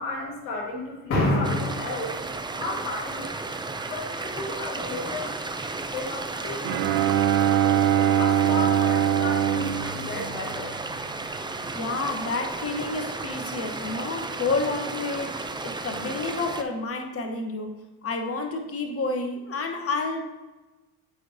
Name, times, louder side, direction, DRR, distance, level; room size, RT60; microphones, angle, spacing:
voice 1, 0.0-2.1 2.5-3.3 3.9-5.4 5.9-7.1 8.2-10.8, left 2 dB, 90° left, -1 dB, 1.6 m, -31 dB
sound 1, 1.4-16.6, right 3 dB, 10° right, 0.5 m, -33 dB
Bowed string instrument, 6.6-11.0, right 10 dB, 85° right, 0.5 m, -23 dB
voice 2, 11.7-20.2, left 3 dB, 35° left, 4 dB, 1.0 m, -30 dB
9.5 x 4.6 x 2.6 m, 1.1 s
hypercardioid pair, 60°, 42 cm